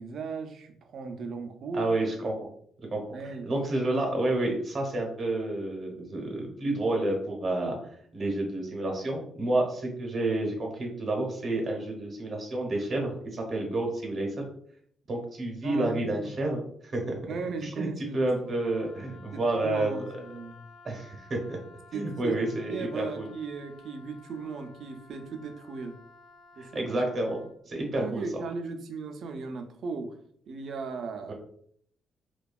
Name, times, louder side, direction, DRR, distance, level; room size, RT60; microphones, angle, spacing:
voice 1, 0.0-1.8 3.1-3.4 15.6-16.3 17.3-18.3 19.3-20.6 21.9-26.0 26.6-26.9 28.0-30.2 30.5-31.3, right 4 dB, 65° right, 6 dB, 0.4 m, -37 dB
voice 2, 1.7-2.3 2.9-3.0 3.4-7.8 8.1-14.3 15.1-17.3 17.6-20.0 20.8-21.6 21.9-23.3 26.6-27.4 27.7-28.2 31.3-31.4, right 2 dB, 45° right, 1 dB, 0.7 m, -29 dB
Wind instrument woodwind instrument, 18.4-27.5, left 3 dB, 75° left, 1.0 m, -54 dB
2.7 x 2.2 x 2.2 m, 0.64 s
cardioid pair, 90°, 0 cm